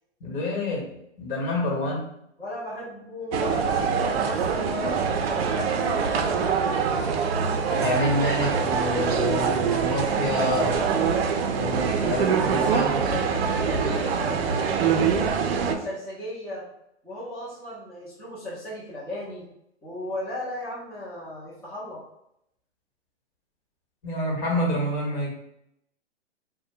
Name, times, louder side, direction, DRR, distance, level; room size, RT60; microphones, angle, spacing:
voice 1, 0.2-0.9 1.2-2.1 7.8-10.8 11.5-12.9 24.0-25.3, left 1 dB, 45° left, -1 dB, 1.2 m, -27 dB
voice 2, 2.4-6.6 12.6-15.4 15.7-16.7 17.0-19.5 19.8-22.0, left 1 dB, 5° left, -10 dB, 0.5 m, -36 dB
sound 1, 3.3-15.8, right 6 dB, 60° right, 0.5 m, -24 dB
2.6 x 2.1 x 3.3 m, 0.77 s
hypercardioid pair, 130°, 35 cm